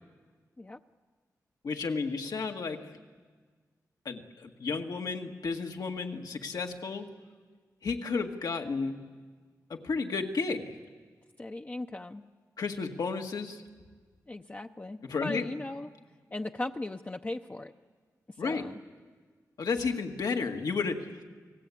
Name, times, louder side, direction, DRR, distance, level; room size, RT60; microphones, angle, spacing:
voice 1, 1.6-2.8 4.1-7.1 7.8-8.9 9.7-10.8 12.6-13.6 15.1-15.4 18.4-18.6 19.6-21.2, left 4 dB, 75° left, 3 dB, 1.9 m, -32 dB
voice 2, 11.4-12.2 14.3-15.9 16.3-17.7 18.4-18.8, left 2 dB, 25° left, 4 dB, 0.7 m, -38 dB
29.5 x 19.5 x 8.5 m, 1.5 s
cardioid pair, 70°, 7 cm